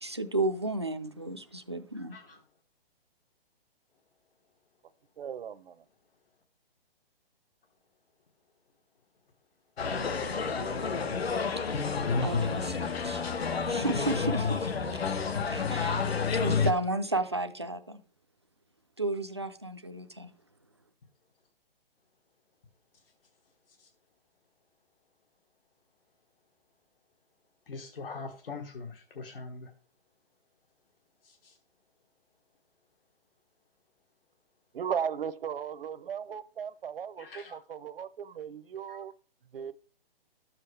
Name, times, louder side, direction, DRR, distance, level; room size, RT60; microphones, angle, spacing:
voice 1, 0.0-2.2 12.2-13.2 13.7-14.9 15.5-16.0 16.4-18.0 19.0-20.3, right 2 dB, 30° right, 0.4 m, -33 dB
voice 2, 5.2-5.8 14.8-14.9 34.7-39.1 39.5-39.7, right 8 dB, 70° right, 0.7 m, -36 dB
sound 1, 9.8-16.7, left 5 dB, 85° left, 1.2 m, -29 dB
voice 3, 27.7-29.7 31.2-31.6 37.2-37.6 38.9-39.0, left 4 dB, 70° left, 1.4 m, -43 dB
12.0 x 7.4 x 3.3 m
hypercardioid pair, 180°, 30 cm